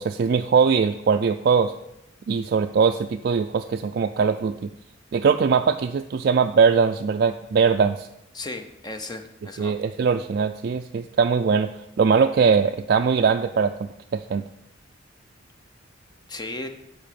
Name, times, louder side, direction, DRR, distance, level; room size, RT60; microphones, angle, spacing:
voice 1, 0.0-1.7 2.3-4.6 5.1-8.1 9.6-11.7 12.0-14.4, right 5 dB, 50° right, 5 dB, 0.3 m, -21 dB
voice 2, 8.3-9.7 16.3-16.7, left 2 dB, 20° left, 7 dB, 0.6 m, -35 dB
7.6 x 4.9 x 6.9 m, 0.81 s
head